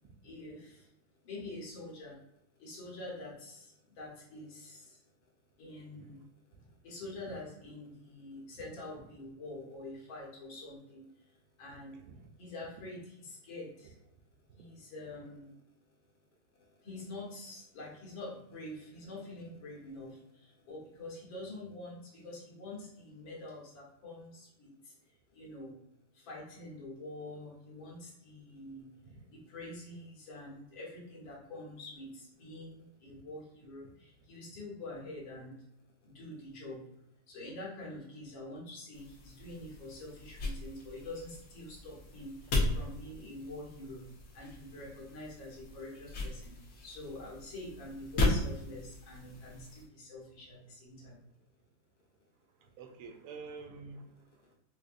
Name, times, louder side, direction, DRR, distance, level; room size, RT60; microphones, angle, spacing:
voice 1, 0.2-0.9 1.2-2.2 2.6-5.0 5.6-6.2 6.8-11.1 11.6-12.0 12.4-13.9 14.5-15.5 16.8-24.9 25.3-25.7 26.1-28.9 29.3-35.5 36.0-36.8 37.3-44.0 44.3-46.5 46.8-51.2, left 2 dB, 75° left, -4 dB, 1.9 m, -46 dB
sound 1, 38.9-49.8, left 2 dB, 55° left, 1.1 m, -37 dB
voice 2, 52.6-54.3, right 4 dB, 90° right, 4 dB, 1.4 m, -50 dB
5.1 x 2.1 x 2.5 m, 0.83 s
omnidirectional pair, 2.2 m